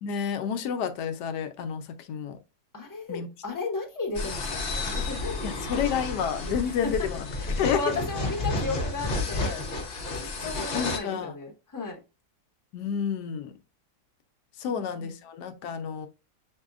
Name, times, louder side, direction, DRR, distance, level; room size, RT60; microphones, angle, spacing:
voice 1, 0.0-2.4 3.1-3.3 5.4-7.3 7.6-7.8 10.7-11.3 12.7-13.5 14.6-16.1, left 7 dB, 85° left, 1.2 m, -30 dB
voice 2, 2.7-5.8 6.8-7.1 7.4-9.6 10.1-12.0 14.7-15.1, left 3 dB, 15° left, 1.0 m, -35 dB
sound 1, 4.1-11.0, left 2 dB, 45° left, 0.9 m, -31 dB
7.1 x 2.7 x 2.4 m
omnidirectional pair, 1.7 m